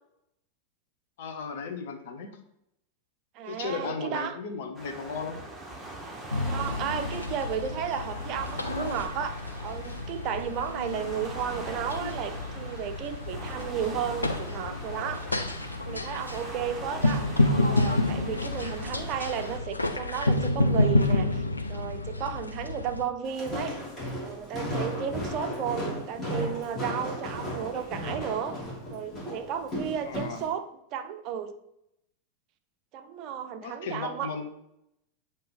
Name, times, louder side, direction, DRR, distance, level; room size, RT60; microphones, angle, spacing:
voice 1, 1.2-2.4 3.5-5.4 6.8-6.9 30.0-30.4 33.6-34.5, left 5 dB, 55° left, 5 dB, 0.9 m, -35 dB
voice 2, 3.4-4.4 6.4-9.4 9.6-15.2 15.9-17.3 17.7-23.8 24.2-28.6 28.9-31.5 32.9-34.3, right 8 dB, 40° right, 8 dB, 0.5 m, -33 dB
Waves surf, 4.7-19.6, right 1 dB, 10° right, 1.1 m, -42 dB
sound 1, 6.3-23.0, left 2 dB, 80° left, 0.5 m, -29 dB
Walk footsteps, 23.2-30.5, equal, 15° left, 2.5 m, -35 dB
7.7 x 2.9 x 5.0 m, 0.80 s
figure-of-eight pair, 90°, 0 cm